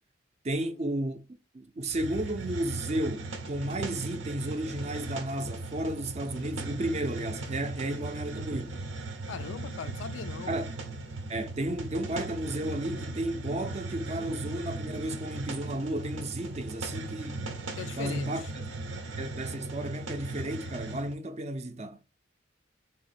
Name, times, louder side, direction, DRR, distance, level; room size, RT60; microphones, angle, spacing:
voice 1, 0.4-1.2 1.5-8.8 10.5-10.8 11.3-17.4 17.8-18.4 19.2-22.0, right 1 dB, 35° right, 0.5 m, -33 dB
Hiss, 1.9-21.1, right 2 dB, 85° right, 0.7 m, -38 dB
voice 2, 9.3-10.6 17.8-18.5, left 7 dB, 75° left, 0.3 m, -40 dB
3.5 x 2.9 x 4.1 m
head